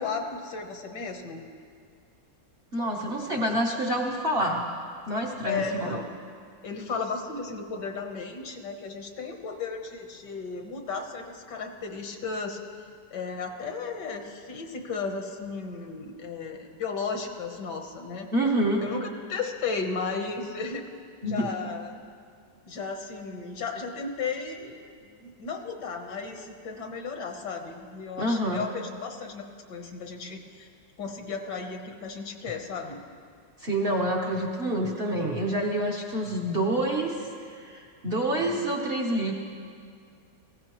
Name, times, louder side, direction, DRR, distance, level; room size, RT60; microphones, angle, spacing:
voice 1, 0.0-1.5 5.4-6.1 6.6-12.6 13.1-18.3 18.8-20.8 21.2-22.0 22.6-29.4 29.7-30.7 31.0-33.0 38.4-38.7, left 4 dB, 70° left, 4 dB, 1.7 m, -34 dB
voice 2, 2.7-4.7 5.1-6.0 18.3-18.8 21.2-21.5 28.2-28.7 33.6-39.3, right 1 dB, 40° right, -1 dB, 1.0 m, -27 dB
18.0 x 15.5 x 3.1 m, 2.3 s
omnidirectional pair, 2.0 m